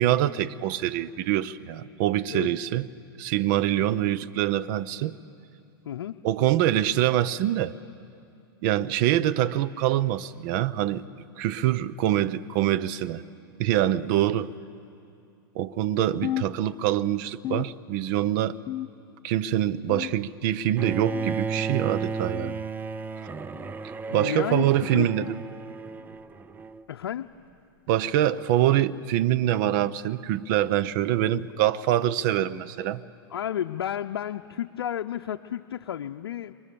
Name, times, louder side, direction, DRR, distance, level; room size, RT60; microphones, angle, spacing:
voice 1, 0.0-2.9 3.2-5.2 6.2-7.7 8.6-11.0 11.4-13.2 13.6-14.5 15.5-18.6 19.2-22.6 24.1-25.4 27.9-33.0, right 12 dB, 50° right, 0.8 m, -25 dB
voice 2, 5.9-6.2 24.1-25.4 26.9-27.3 33.3-36.5, left 10 dB, 80° left, 0.6 m, -32 dB
sound 1, 16.2-17.1 17.4-18.2 18.7-19.3 19.9-20.5 21.1-21.5 22.3-22.6 23.5-23.8 24.8-25.0 26.0-26.2 27.2-27.4 28.4-28.6 29.6-29.7 30.9-31.0, left 13 dB, 30° left, 0.7 m, -36 dB
Bowed string instrument, 20.8-26.8, right 5 dB, 15° right, 0.6 m, -34 dB
30.0 x 24.0 x 7.0 m
hypercardioid pair, 120°, 13 cm